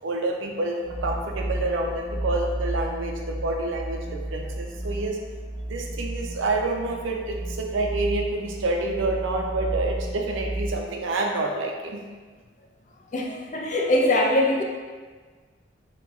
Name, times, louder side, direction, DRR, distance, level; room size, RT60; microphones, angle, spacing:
voice 1, 0.0-5.2 5.7-12.0, right 2 dB, 75° right, 2 dB, 0.5 m, -28 dB
sound 1, 0.8-10.9, right 1 dB, 20° right, 0.8 m, -32 dB
voice 2, 13.1-14.6, left 1 dB, 40° left, 1 dB, 0.4 m, -22 dB
4.1 x 2.9 x 2.3 m, 1.5 s
head